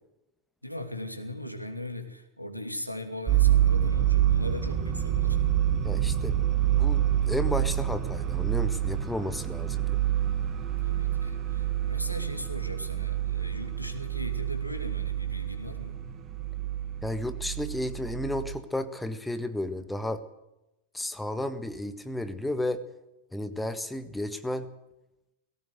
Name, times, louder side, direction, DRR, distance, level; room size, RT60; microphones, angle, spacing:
voice 1, 0.6-5.4 10.8-16.1, left 1 dB, 90° left, 5 dB, 2.8 m, -39 dB
sound 1, 3.3-18.6, right 11 dB, 30° right, 3.0 m, -27 dB
voice 2, 5.8-6.4 6.7-10.0 17.0-20.2 20.9-22.8 23.3-24.7, left 1 dB, 5° left, 10 dB, 1.6 m, -33 dB
19.0 x 17.0 x 7.9 m, 0.90 s
figure-of-eight pair, 90°, 0 cm